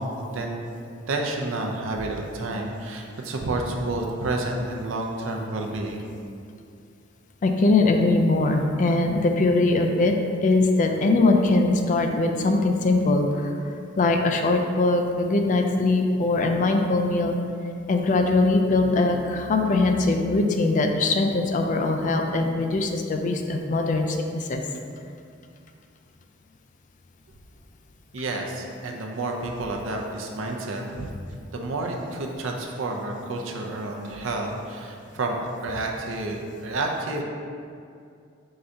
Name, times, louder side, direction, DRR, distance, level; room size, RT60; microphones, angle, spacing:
voice 1, 0.0-6.0 28.1-31.1 31.5-37.2, right 2 dB, 80° right, 1 dB, 0.5 m, -30 dB
voice 2, 7.4-10.1 10.4-13.2 14.0-17.4 17.9-24.6, left 2 dB, 40° left, 4 dB, 0.3 m, -21 dB
3.8 x 2.6 x 4.3 m, 2.4 s
head